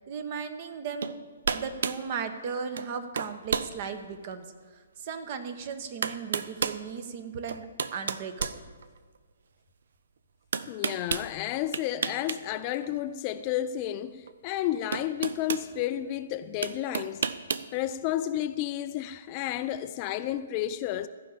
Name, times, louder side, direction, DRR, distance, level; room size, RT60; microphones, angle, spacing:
voice 1, 0.1-1.1 1.5-4.4 5.0-7.6 7.9-8.5, right 6 dB, 40° right, 1.1 m, -36 dB
sound 1, 1.0-1.2 1.4-2.0 2.8-2.9 3.2-3.7 4.3-4.4 5.5-5.6 6.0-6.8 7.5-9.2 10.5-11.3 11.7-12.4 12.7-12.9 14.3-14.4 14.9-15.7 16.6-17.7, right 6 dB, 55° right, 0.5 m, -31 dB
voice 2, 10.7-17.3 17.7-21.1, left 12 dB, 30° left, 0.4 m, -31 dB
14.5 x 5.6 x 8.7 m
figure-of-eight pair, 125°, 0 cm